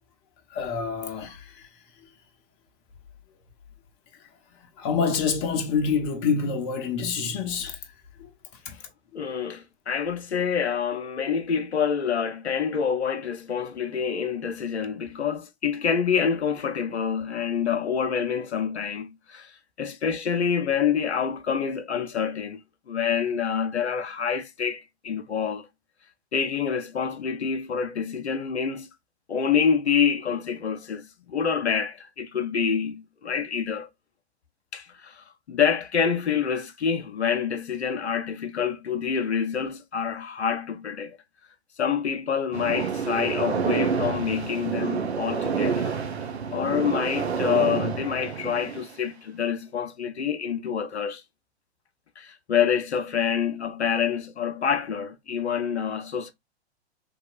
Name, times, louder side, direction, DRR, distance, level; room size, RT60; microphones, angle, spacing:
voice 1, 0.5-1.7 4.8-7.8 8.2-8.3 8.7-8.8 9.1-9.2, left 5 dB, 30° left, 0.6 m, -27 dB
voice 2, 9.1-22.6 22.9-25.7 26.3-28.9 29.3-33.9 34.7-41.2 41.8-46.0 46.5-51.2 52.2-56.3, left 7 dB, 80° left, 0.5 m, -27 dB
sound 1, 42.5-48.9, right 6 dB, 70° right, 0.7 m, -28 dB
3.4 x 2.7 x 2.3 m
figure-of-eight pair, 105°, 33 cm